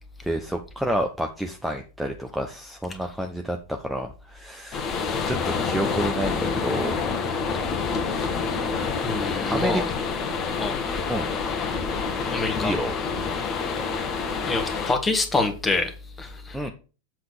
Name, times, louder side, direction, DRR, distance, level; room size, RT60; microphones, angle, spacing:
voice 1, 0.2-4.9 5.2-7.0 9.5-9.8 11.1-11.3 12.6-12.9 16.5-16.7, right 1 dB, ahead, 0.8 m, -29 dB
sound 1, 4.7-14.9, left 5 dB, 30° left, 1.2 m, -27 dB
voice 2, 9.0-9.9 10.6-10.8 12.3-12.7 14.4-15.9 16.2-16.7, left 3 dB, 15° left, 1.6 m, -26 dB
7.5 x 3.9 x 6.6 m
figure-of-eight pair, 90°, 0 cm